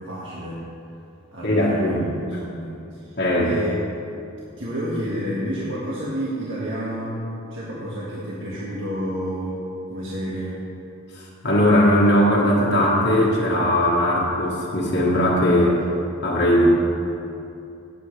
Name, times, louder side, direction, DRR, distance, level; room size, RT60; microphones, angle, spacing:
voice 1, 0.1-0.6 1.3-2.7 2.9-3.1 3.4-3.8 4.6-7.2 7.5-10.6, equal, 55° right, -8 dB, 1.8 m, -30 dB
voice 2, 1.4-2.1 3.2-3.5 11.4-15.8 16.2-16.7, equal, 50° left, -6 dB, 1.5 m, -19 dB
19.0 x 8.4 x 3.3 m, 2.7 s
head